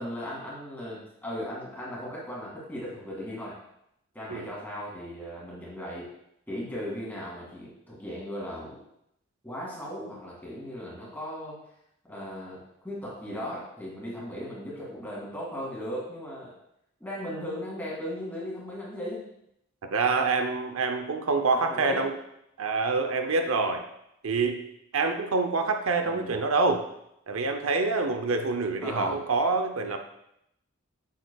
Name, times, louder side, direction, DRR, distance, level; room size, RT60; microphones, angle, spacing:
voice 1, 0.0-3.6 4.1-6.1 6.5-8.8 9.4-11.6 12.0-16.5 17.0-19.3 21.5-22.1 26.0-26.4 28.8-29.2, equal, 10° left, -5 dB, 2.2 m, -37 dB
voice 2, 19.9-22.1 22.6-23.8 24.2-24.6 24.9-26.8 27.3-30.0, right 3 dB, 80° right, 5 dB, 0.6 m, -26 dB
8.3 x 6.5 x 2.3 m, 0.78 s
head